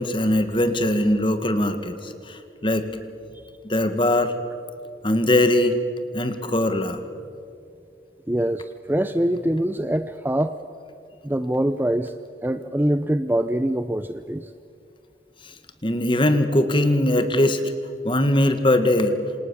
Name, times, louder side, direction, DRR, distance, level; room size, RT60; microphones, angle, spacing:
voice 1, 0.0-2.9 3.6-4.4 5.0-5.7 6.1-7.0 15.8-17.6 18.0-19.1, left 1 dB, 30° left, 9 dB, 1.9 m, -21 dB
voice 2, 8.3-10.6 11.2-12.1 12.4-14.5, right 1 dB, 10° right, 11 dB, 0.6 m, -24 dB
28.0 x 27.0 x 7.2 m, 2.5 s
head